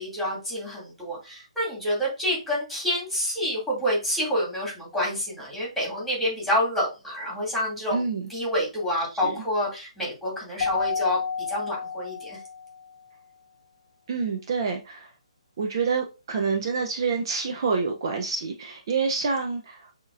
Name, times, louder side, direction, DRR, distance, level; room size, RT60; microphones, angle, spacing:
voice 1, 0.0-8.0 8.3-11.2 11.5-12.4, equal, ahead, -5 dB, 2.3 m, -28 dB
voice 2, 7.9-8.3 9.2-9.3 14.1-15.1 15.6-19.9, right 5 dB, 45° right, 4 dB, 0.6 m, -27 dB
Keyboard (musical), 10.6-12.9, left 6 dB, 45° left, 0.5 m, -30 dB
6.3 x 2.9 x 2.5 m, 0.29 s
figure-of-eight pair, 135°, 4 cm